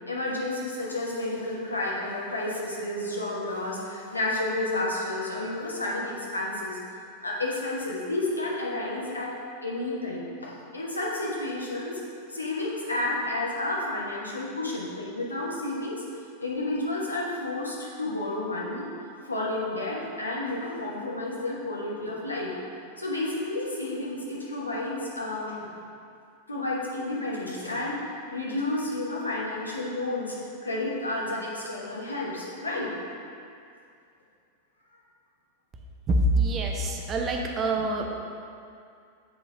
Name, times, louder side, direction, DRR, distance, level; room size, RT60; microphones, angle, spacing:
voice 1, 0.1-6.8 7.2-9.3 9.6-12.0 12.3-16.0 16.4-18.9 19.2-22.5 23.0-25.7 26.5-28.0 28.3-30.4 30.6-32.9, left 2 dB, 80° left, -4 dB, 1.1 m, -31 dB
voice 2, 36.1-38.1, right 2 dB, 25° right, 1 dB, 0.7 m, -25 dB
7.3 x 3.9 x 3.8 m, 2.4 s
figure-of-eight pair, 90°, 0 cm